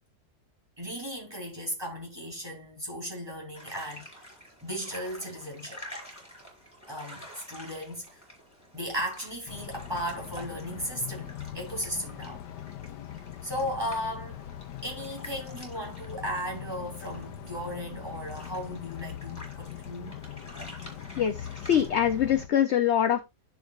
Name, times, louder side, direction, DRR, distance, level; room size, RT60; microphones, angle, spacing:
voice 1, 0.8-4.2 4.6-5.8 6.9-8.2 8.7-12.4 13.4-14.5 14.8-20.2, equal, 15° right, 3.3 m, -36 dB
sound 1, 3.5-21.9, equal, 10° left, 4.5 m, -49 dB
sound 2, 9.5-22.5, left 10 dB, 80° left, 1.4 m, -41 dB
voice 2, 21.2-23.2, left 9 dB, 55° left, 0.8 m, -24 dB
10.5 x 7.2 x 2.4 m
omnidirectional pair, 1.8 m